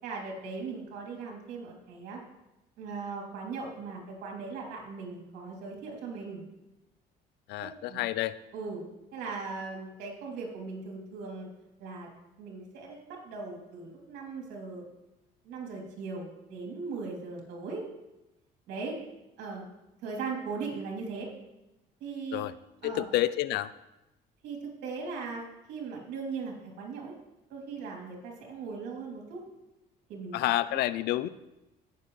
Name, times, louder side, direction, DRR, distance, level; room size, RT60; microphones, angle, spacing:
voice 1, 0.0-2.2 2.8-6.4 7.9-8.0 8.5-11.5 11.8-12.1 12.4-14.8 15.4-17.8 18.7-19.0 19.4-19.7 20.0-21.3 22.0-22.4 22.8-23.0 24.4-24.6 24.8-25.4 25.7-27.1 27.5-29.4 30.1-30.4 30.7-30.8, right 4 dB, 85° right, -1 dB, 3.0 m, -39 dB
voice 2, 7.5-8.3 22.3-22.5 22.8-23.7 30.3-31.3, left 15 dB, 80° left, 17 dB, 0.4 m, -29 dB
17.0 x 6.8 x 3.1 m, 0.96 s
cardioid pair, 110°, 17 cm